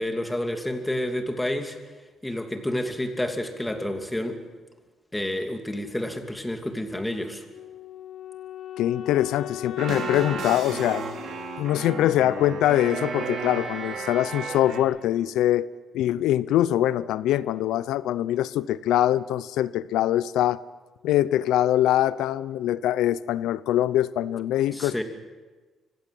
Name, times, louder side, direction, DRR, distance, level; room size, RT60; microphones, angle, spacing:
voice 1, 0.0-1.8 2.2-4.4 5.1-7.4 24.7-25.0, left 1 dB, 10° left, 4 dB, 2.8 m, -29 dB
Wind instrument woodwind instrument, 7.5-12.5, left 12 dB, 70° left, 1.2 m, -39 dB
voice 2, 8.8-11.0 11.6-15.7 15.9-20.6 21.0-25.0, left 13 dB, 90° left, 18 dB, 0.6 m, -23 dB
sound 1, 9.8-14.8, right 5 dB, 65° right, 4.2 m, -33 dB
25.5 x 16.5 x 7.7 m, 1.3 s
cardioid pair, 90°, 0 cm